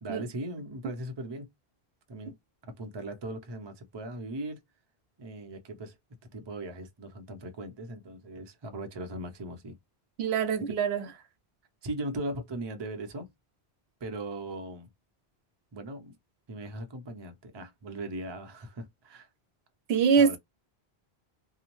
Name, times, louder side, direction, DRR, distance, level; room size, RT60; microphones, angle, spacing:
voice 1, 0.0-1.5 2.1-2.4 2.7-4.6 5.2-6.0 6.3-9.8 10.6-10.8 11.8-13.3 14.0-14.9 15.7-16.1 16.5-19.3 20.1-20.4, right 1 dB, 30° right, 0.5 m, -39 dB
voice 2, 10.2-11.0 19.9-20.4, right 6 dB, 85° right, 0.9 m, -24 dB
2.7 x 2.0 x 2.9 m
omnidirectional pair, 1.0 m